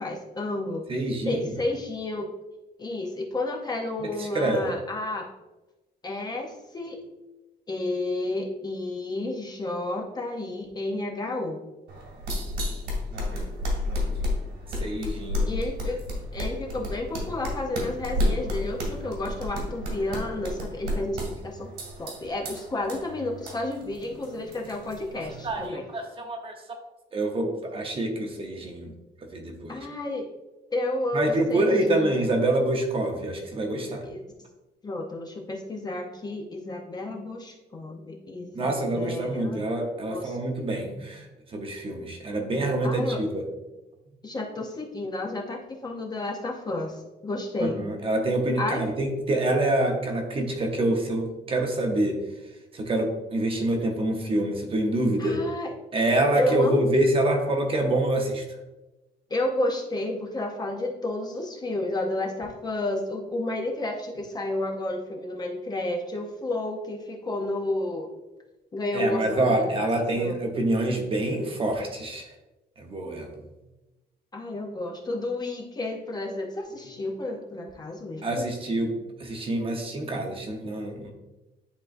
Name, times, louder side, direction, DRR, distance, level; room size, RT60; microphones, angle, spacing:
voice 1, 0.0-0.8 1.2-2.3 2.8-5.3 6.0-7.0 7.7-11.6 15.5-16.0 16.3-21.7 22.0-25.9 29.7-30.3 30.7-32.3 34.0-34.2 34.8-39.6 40.1-40.4 42.8-43.2 44.2-47.9 48.6-48.8 55.2-55.7 56.4-56.9 59.3-68.1 68.7-70.5 74.3-78.5, left 2 dB, 20° left, 1 dB, 0.6 m, -31 dB
voice 2, 0.9-1.4 4.2-4.7 14.8-15.5 25.4-26.5 27.1-28.9 29.3-29.9 31.1-34.0 38.5-41.3 41.5-43.4 47.6-52.2 52.7-55.4 55.9-58.4 68.9-72.3 72.8-73.3 78.2-78.9 79.2-81.1, right 1 dB, 30° right, 3 dB, 0.8 m, -26 dB
sound 1, 11.9-25.7, left 1 dB, 80° right, 2.1 m, -32 dB
10.0 x 3.7 x 2.5 m, 1.0 s
cardioid pair, 165°, 18 cm